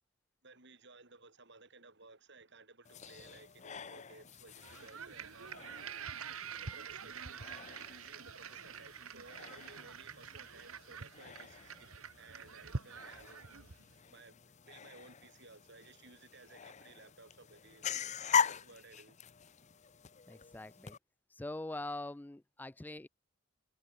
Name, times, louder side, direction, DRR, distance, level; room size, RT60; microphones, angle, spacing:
voice 1, 0.4-6.1 6.5-11.9 12.2-13.4 14.1-17.9 18.4-19.2, right 3 dB, 55° right, 6.4 m, -58 dB
sound 1, 2.8-21.0, left 7 dB, 35° left, 0.7 m, -42 dB
sound 2, 4.6-13.9, right 5 dB, 80° right, 1.4 m, -46 dB
voice 2, 20.3-21.0 21.3-23.1, left 2 dB, 10° left, 0.3 m, -43 dB
head